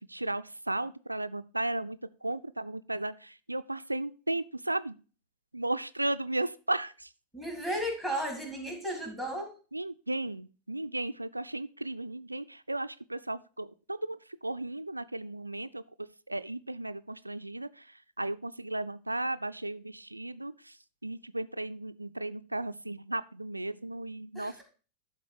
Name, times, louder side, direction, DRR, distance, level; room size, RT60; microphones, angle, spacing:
voice 1, 0.0-5.0 5.5-7.1 9.7-15.8 16.3-20.8 21.0-24.6, right 2 dB, 85° right, 12 dB, 0.3 m, -35 dB
voice 2, 7.3-9.5 24.3-24.6, equal, 5° left, 1 dB, 3.3 m, -34 dB
11.5 x 3.9 x 4.7 m, 0.36 s
figure-of-eight pair, 90°, 0 cm